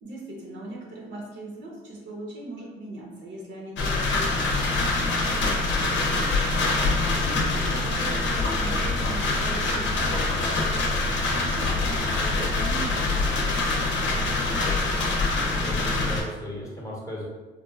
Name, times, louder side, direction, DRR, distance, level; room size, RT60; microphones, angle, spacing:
voice 1, 0.0-6.3 7.2-11.0 11.3-15.1, right 1 dB, 70° right, -2 dB, 0.8 m, -40 dB
sound 1, 3.8-16.2, left 3 dB, 70° left, 0.7 m, -25 dB
voice 2, 6.6-7.0 15.5-17.3, equal, 15° left, -4 dB, 0.8 m, -36 dB
3.0 x 2.4 x 2.3 m, 1.2 s
cardioid pair, 90°, 20 cm